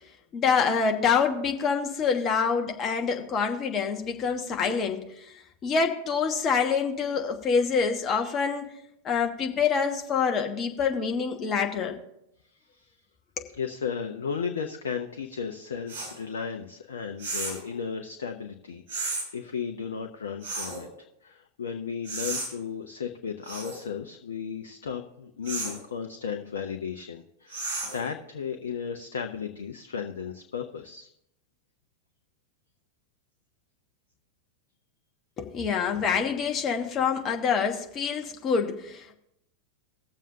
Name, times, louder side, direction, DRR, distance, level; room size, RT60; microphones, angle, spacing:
voice 1, 0.3-5.4 5.6-8.7 9.0-12.0 35.4-39.1, left 6 dB, 30° left, 3 dB, 1.2 m, -26 dB
voice 2, 12.6-13.0 13.5-20.9 21.2-31.1, left 6 dB, 65° left, 5 dB, 0.7 m, -35 dB
sound 1, 15.9-16.1 17.2-17.7 18.9-19.3 20.4-20.8 22.0-22.5 23.4-23.8 25.4-25.8 27.5-28.1, right 3 dB, 50° right, 4.2 m, -33 dB
19.0 x 7.3 x 2.8 m, 0.81 s
figure-of-eight pair, 90°, 0 cm